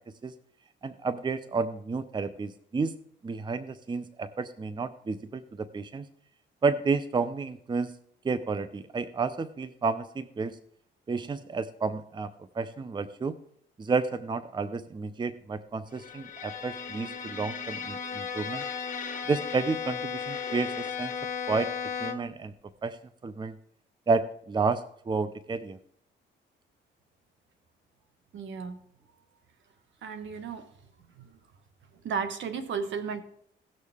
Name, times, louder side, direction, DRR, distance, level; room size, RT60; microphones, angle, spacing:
voice 1, 0.8-2.9 3.2-6.1 6.6-7.9 8.2-10.6 11.1-13.4 13.8-18.6 19.3-21.1 21.5-21.7 22.0-22.5 22.8-23.0 23.2-23.5 24.1-25.8, right 4 dB, 25° right, 14 dB, 0.6 m, -31 dB
Bowed string instrument, 16.0-22.4, left 6 dB, 40° left, 1.7 m, -35 dB
voice 2, 28.3-28.8 30.0-30.7 32.0-33.2, right 6 dB, 70° right, 9 dB, 1.3 m, -33 dB
17.0 x 6.6 x 3.5 m, 0.66 s
cardioid pair, 90°, 20 cm